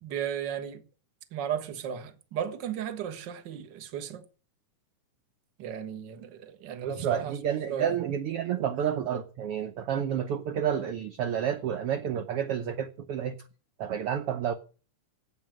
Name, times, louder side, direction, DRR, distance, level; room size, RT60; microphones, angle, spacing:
voice 1, 0.0-0.8 1.3-4.2 5.6-7.4 7.7-7.9, right 8 dB, 50° right, 1.5 m, -35 dB
voice 2, 6.8-13.4 13.8-14.5, right 9 dB, 65° right, 1.5 m, -30 dB
13.0 x 8.7 x 7.6 m
omnidirectional pair, 3.7 m